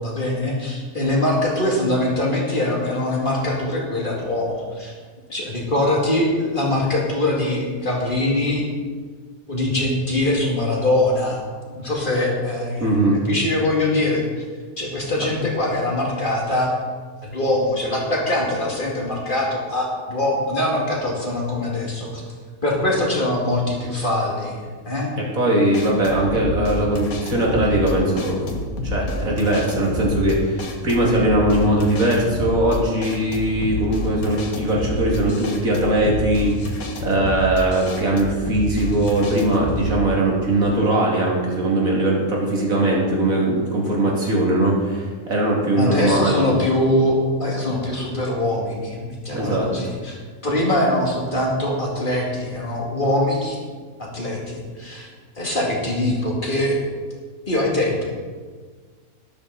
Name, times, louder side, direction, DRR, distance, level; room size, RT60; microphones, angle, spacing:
voice 1, 0.0-4.9 5.3-8.6 9.5-11.4 11.7-13.0 13.2-14.2 14.8-16.7 17.2-22.2 22.6-25.1 45.7-50.2 50.4-53.6 54.0-55.1 55.4-56.8 57.5-58.1, left 1 dB, 35° left, -3 dB, 2.6 m, -22 dB
voice 2, 12.8-13.2 25.3-28.6 28.8-46.4 49.3-49.7, right 1 dB, 70° right, -3 dB, 3.0 m, -20 dB
sound 1, 25.7-40.0, left 1 dB, 85° left, 1.8 m, -29 dB
12.5 x 11.5 x 4.1 m, 1.5 s
omnidirectional pair, 1.5 m